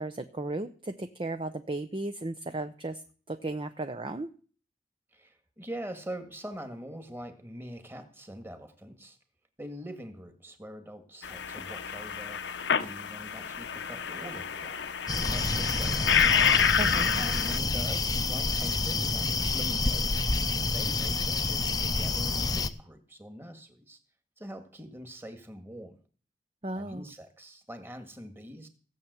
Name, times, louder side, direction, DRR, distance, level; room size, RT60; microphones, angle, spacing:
voice 1, 0.0-3.0 3.3-4.3 16.8-17.1 26.6-27.0, right 2 dB, 30° right, 9 dB, 0.7 m, -35 dB
voice 2, 5.1-9.2 9.6-14.9 15.3-16.2 17.2-24.0 24.4-26.0 26.7-28.7, equal, 15° right, 8 dB, 1.9 m, -44 dB
sound 1, 11.2-17.6, left 7 dB, 80° left, 1.0 m, -28 dB
sound 2, 15.1-22.7, left 3 dB, 20° left, 0.7 m, -28 dB
16.5 x 7.2 x 8.1 m, 0.40 s
head